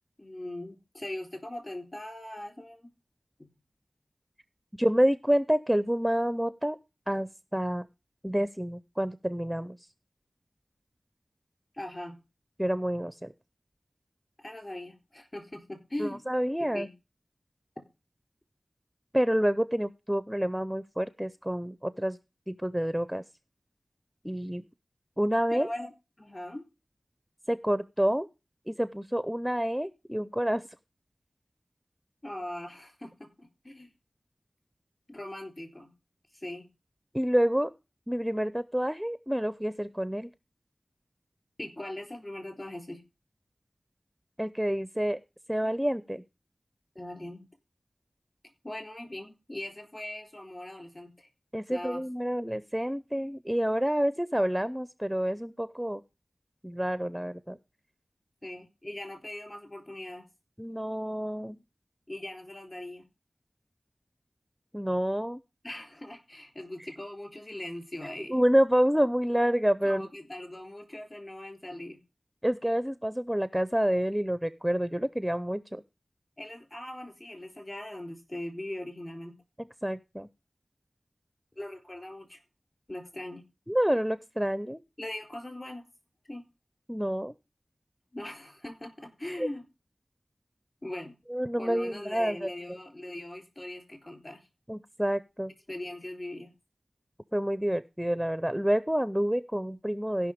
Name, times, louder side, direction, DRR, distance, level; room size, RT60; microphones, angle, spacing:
voice 1, 0.2-2.9 11.7-12.2 14.4-16.2 16.6-16.9 25.5-25.9 26.2-26.7 32.2-33.9 35.1-35.9 36.3-36.7 41.6-43.0 47.0-47.5 48.6-51.3 51.7-52.0 58.4-60.3 62.1-63.1 65.6-68.4 69.8-72.0 76.4-79.4 81.6-82.4 82.9-83.4 85.0-85.9 86.3-86.5 88.1-89.7 90.8-91.2 91.6-94.4 95.7-96.5, left 1 dB, 35° left, 5 dB, 3.9 m, -40 dB
voice 2, 4.8-6.8 7.1-7.8 8.2-9.8 12.6-13.3 16.0-16.9 19.1-22.2 22.5-23.2 24.2-24.6 25.2-25.7 27.5-28.3 28.7-30.6 37.1-37.7 38.1-40.3 44.4-45.2 45.5-46.2 51.5-56.0 56.6-57.6 60.6-61.6 64.7-65.4 68.3-70.1 72.4-75.8 79.6-80.3 83.7-84.8 86.9-87.3 89.2-89.5 91.3-92.5 94.7-95.5 97.3-100.3, equal, 5° right, 14 dB, 0.6 m, -28 dB
16.0 x 5.6 x 5.1 m, 0.28 s
wide cardioid pair, 50°, 0 cm